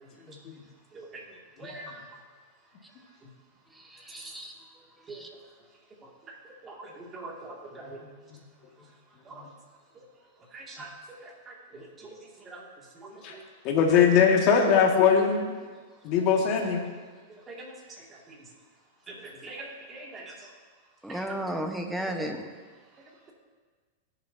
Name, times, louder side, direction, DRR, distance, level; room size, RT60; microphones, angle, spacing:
voice 1, 0.3-0.6 1.6-1.9 7.8-7.9 8.3-8.4 9.3-9.4 13.2-13.3 13.6-15.4 16.0-16.9, left 6 dB, 45° left, 1 dB, 1.9 m, -22 dB
voice 2, 1.6-1.9 6.6-8.0 9.3-9.4 10.5-10.9 12.0-12.1 12.5-12.6 17.5-17.7 19.4-20.2, right 2 dB, 25° right, -2 dB, 2.4 m, -42 dB
voice 3, 3.7-4.5 5.1-5.3 21.0-22.5, right 1 dB, 5° right, 3 dB, 1.1 m, -34 dB
17.5 x 7.0 x 2.8 m, 1.5 s
hypercardioid pair, 125°, 0 cm